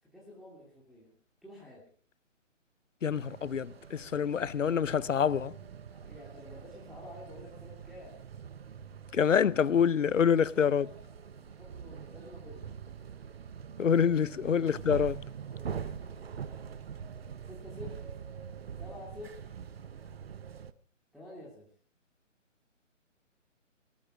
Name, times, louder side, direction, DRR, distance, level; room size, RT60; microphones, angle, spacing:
voice 1, 0.0-1.1 1.4-1.9 5.0-5.2 5.9-8.2 10.3-12.7 14.2-14.4 15.4-16.2 17.4-18.1 18.8-19.5 21.1-21.7, left 1 dB, ahead, 2.7 m, -50 dB
voice 2, 3.0-5.5 9.1-10.9 13.8-15.2, left 7 dB, 80° left, 0.7 m, -26 dB
sound 1, 3.1-20.7, right 7 dB, 50° right, 1.1 m, -44 dB
18.5 x 13.5 x 4.9 m
figure-of-eight pair, 150°, 38 cm